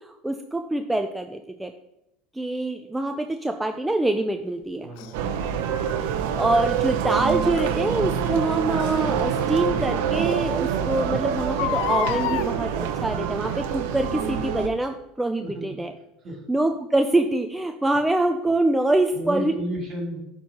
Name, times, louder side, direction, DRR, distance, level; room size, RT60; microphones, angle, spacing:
voice 1, 0.0-1.7 2.3-4.9 6.0-6.1 6.4-15.9 16.5-19.5, right 2 dB, 5° right, 5 dB, 0.3 m, -25 dB
voice 2, 4.8-5.5 15.4-15.7 16.2-16.4 19.1-20.2, equal, 40° right, 0 dB, 2.5 m, -32 dB
Crying sobbing, 5.0-5.1 7.6-7.8 9.4-9.5 10.0-10.1 10.3-10.4 11.4-12.5 13.5-13.8 14.4-14.5, left 15 dB, 70° left, 0.3 m, -28 dB
sound 1, 5.1-14.7, right 8 dB, 85° right, 0.6 m, -26 dB
10.5 x 4.5 x 2.8 m, 0.87 s
supercardioid pair, 135°, 0 cm